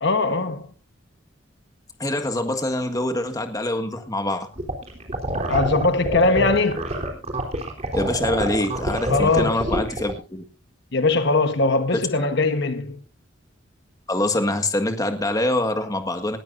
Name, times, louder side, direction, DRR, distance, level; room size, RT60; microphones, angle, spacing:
voice 1, 0.0-0.7 5.5-6.8 9.1-9.7 10.9-13.0, left 3 dB, 60° left, 1.2 m, -21 dB
voice 2, 2.0-4.5 7.9-10.4 12.2-12.3 14.1-16.4, left 1 dB, 20° left, 1.8 m, -25 dB
sound 1, 4.6-10.1, right 1 dB, 35° right, 3.7 m, -26 dB
19.5 x 14.0 x 2.6 m
head